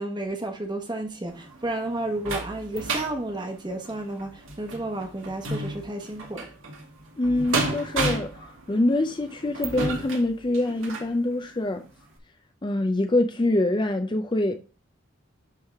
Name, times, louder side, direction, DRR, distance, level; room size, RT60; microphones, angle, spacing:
voice 1, 0.0-6.5, right 1 dB, 20° right, 1.1 m, -32 dB
sound 1, 1.3-11.1 11.7-11.8 12.2-12.3, right 2 dB, 75° right, 1.8 m, -33 dB
voice 2, 7.2-8.3 8.7-11.8 12.6-14.6, left 1 dB, 20° left, 0.4 m, -24 dB
11.0 x 3.6 x 3.5 m
head